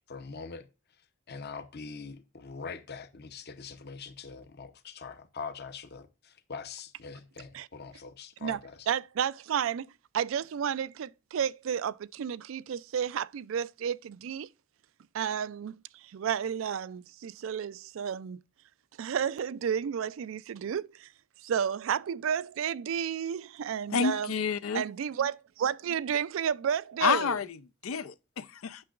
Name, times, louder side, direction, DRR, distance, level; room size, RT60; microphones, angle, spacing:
voice 1, 0.1-0.7 1.3-8.9, left 5 dB, 55° left, 0.8 m, -43 dB
voice 2, 8.9-9.9 10.1-14.5 15.1-18.4 19.0-21.1 21.4-24.3 24.7-27.3, right 8 dB, 70° right, 0.3 m, -32 dB
voice 3, 23.9-24.8 27.0-28.8, left 6 dB, 90° left, 0.5 m, -29 dB
8.6 x 6.1 x 2.4 m
head